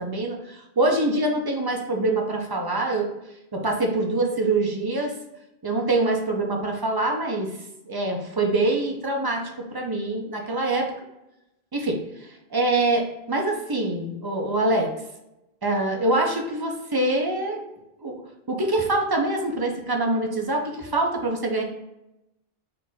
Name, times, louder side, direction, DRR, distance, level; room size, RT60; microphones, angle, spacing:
voice 1, 0.0-3.1 3.5-5.2 5.6-7.5 7.9-10.9 11.7-14.9 15.6-17.6 18.0-18.2 18.5-21.6, right 2 dB, 25° right, 1 dB, 0.6 m, -25 dB
4.4 x 2.5 x 4.0 m, 0.88 s
omnidirectional pair, 1.1 m